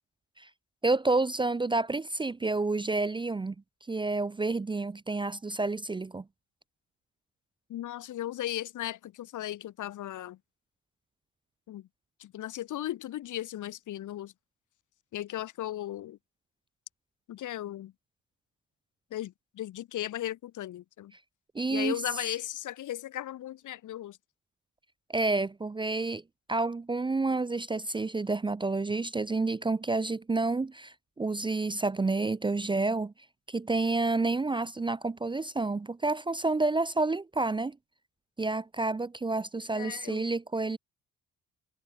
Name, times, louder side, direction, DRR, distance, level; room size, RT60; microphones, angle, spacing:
voice 1, 0.8-3.5 3.9-6.2 21.5-22.0 25.1-26.2 26.5-33.1 33.5-37.8 38.4-40.8, right 3 dB, 15° right, 0.5 m, -29 dB
voice 2, 7.7-10.4 11.7-11.9 12.2-14.3 15.1-16.2 17.3-17.9 19.1-21.1 21.7-24.2 39.7-40.3, left 13 dB, 80° left, 6.3 m, -36 dB
cardioid pair, 90°, 30 cm